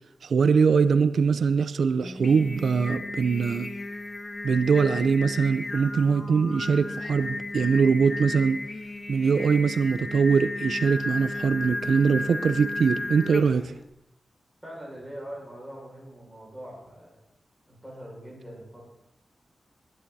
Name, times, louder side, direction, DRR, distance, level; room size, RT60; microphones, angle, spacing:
voice 1, 0.2-3.7 4.4-8.6 9.1-13.7, right 5 dB, 90° right, 12 dB, 0.6 m, -22 dB
Singing, 2.0-13.8, left 2 dB, 30° left, 1.2 m, -34 dB
voice 2, 14.6-17.2 17.7-18.8, equal, ahead, -4 dB, 6.6 m, -42 dB
21.0 x 10.5 x 4.2 m, 0.81 s
wide cardioid pair, 155°, 0 cm